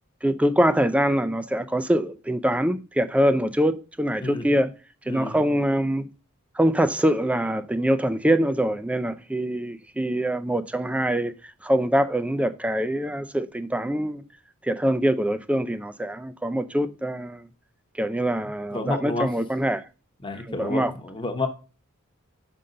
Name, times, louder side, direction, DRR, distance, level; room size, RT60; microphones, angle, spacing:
voice 1, 0.2-4.7 5.1-6.1 6.6-11.3 11.6-14.2 14.6-17.5 18.0-19.8 20.6-20.9, equal, 5° right, 0.4 m, -24 dB
voice 2, 5.1-5.5 18.7-19.3 20.2-21.5, left 2 dB, 20° left, 0.9 m, -30 dB
5.5 x 5.4 x 3.7 m
head